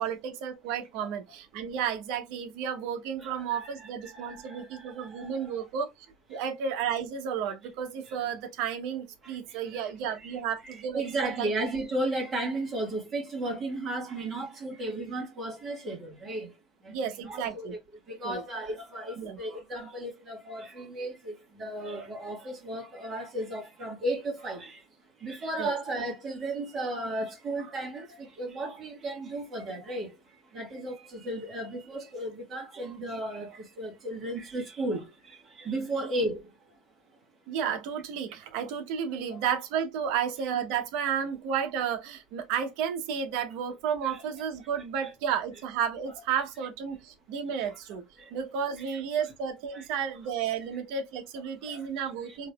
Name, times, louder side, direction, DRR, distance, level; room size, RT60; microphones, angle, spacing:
voice 1, 0.0-5.9 6.3-11.5 16.9-17.7 18.2-18.4 19.2-19.4 25.6-25.7 37.5-48.0 48.3-52.5, right 7 dB, 65° right, 1.0 m, -32 dB
voice 2, 3.2-5.6 6.3-6.4 8.1-8.2 9.2-17.8 18.1-24.9 25.2-36.8 39.3-39.4 44.0-44.2 45.0-45.1 47.6-47.8 48.2-48.3 48.9-49.0 49.7-49.9 51.6-52.4, right 1 dB, 30° right, 1.8 m, -35 dB
3.8 x 3.0 x 2.3 m
supercardioid pair, 140°, 0 cm